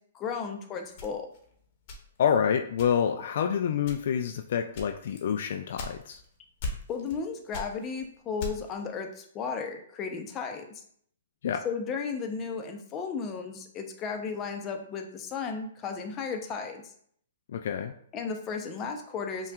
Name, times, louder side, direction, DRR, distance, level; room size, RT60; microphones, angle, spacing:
voice 1, 0.1-1.3 6.9-10.7 11.6-16.8 18.1-19.5, left 5 dB, 25° left, 4 dB, 0.6 m, -34 dB
sound 1, 1.0-2.4 2.8-3.2 3.8-4.3 4.7-6.3 6.6-7.2 7.5-8.8, left 2 dB, 45° left, 0.9 m, -39 dB
voice 2, 2.2-6.2 11.4-11.6 17.5-17.9, left 7 dB, 60° left, 5 dB, 0.3 m, -27 dB
5.6 x 2.3 x 2.3 m, 0.64 s
hypercardioid pair, 130°, 0 cm